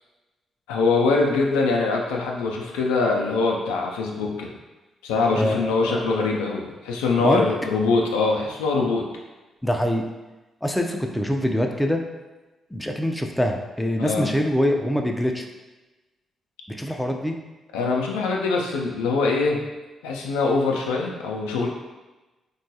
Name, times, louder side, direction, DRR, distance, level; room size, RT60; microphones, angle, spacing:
voice 1, 0.7-4.5 5.0-9.0 14.0-14.3 17.7-19.6 20.0-21.7, left 3 dB, 85° left, -1 dB, 0.3 m, -23 dB
voice 2, 5.3-6.1 7.2-7.4 9.6-10.1 10.6-12.0 12.7-15.5 16.7-17.4, equal, 10° left, 2 dB, 0.4 m, -24 dB
2.9 x 2.3 x 2.7 m, 1.1 s
hypercardioid pair, 45°, 0 cm